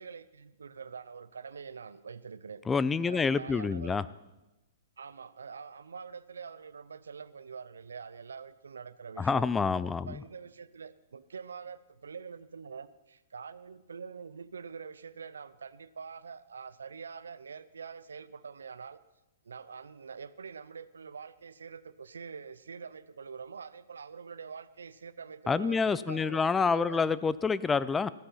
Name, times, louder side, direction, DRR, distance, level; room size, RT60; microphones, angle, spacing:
voice 1, 0.0-2.6 3.0-4.0 5.0-9.5 9.8-19.0 19.4-27.2, right 6 dB, 80° right, 17 dB, 0.6 m, -45 dB
voice 2, 2.7-4.0 9.2-10.2 25.5-28.1, left 5 dB, 15° left, 17 dB, 0.4 m, -27 dB
15.0 x 9.9 x 5.7 m, 1.0 s
hypercardioid pair, 115°, 0 cm